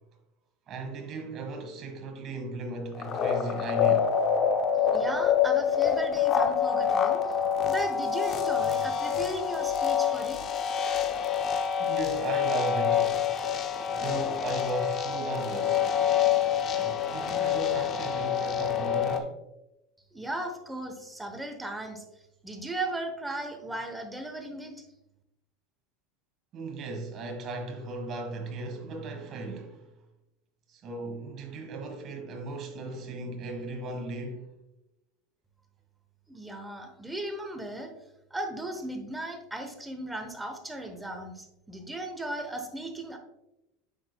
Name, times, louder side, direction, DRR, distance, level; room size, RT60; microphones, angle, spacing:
voice 1, 0.7-4.2 11.8-13.3 13.9-16.0 16.7-19.4 26.5-29.9 30.7-34.5, right 3 dB, 35° right, 1.5 m, -36 dB
sound 1, 3.0-19.2, left 8 dB, 35° left, 0.7 m, -26 dB
voice 2, 4.9-7.2 7.7-10.4 20.1-22.0 22.4-24.8 36.3-37.9 38.3-43.2, right 1 dB, 5° right, 1.0 m, -36 dB
9.8 x 6.4 x 2.3 m
supercardioid pair, 155°, 0 cm